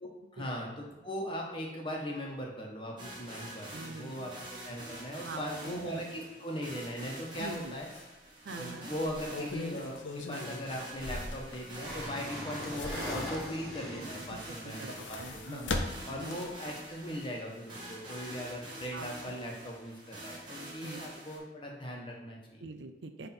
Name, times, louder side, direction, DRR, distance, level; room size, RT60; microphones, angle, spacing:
voice 1, 0.0-4.3 4.6-7.9 8.6-15.6 16.1-22.6, equal, 25° left, -1 dB, 1.2 m, -39 dB
sound 1, 3.0-21.4, right 1 dB, 25° right, 1.7 m, -46 dB
voice 2, 3.7-4.3 5.2-6.0 7.3-7.8 8.4-8.9 14.6-16.4 18.9-19.1 20.8-21.1 22.6-23.3, right 3 dB, 75° right, 8 dB, 0.5 m, -44 dB
sound 2, 7.5-7.6 7.9-8.0 9.0-12.0 12.4-13.8 14.6-16.7 17.1-17.2, left 2 dB, 90° left, 0.7 m, -39 dB
sound 3, 11.8-14.6, equal, ahead, 2.1 m, -40 dB
9.4 x 3.5 x 4.4 m, 1.1 s
head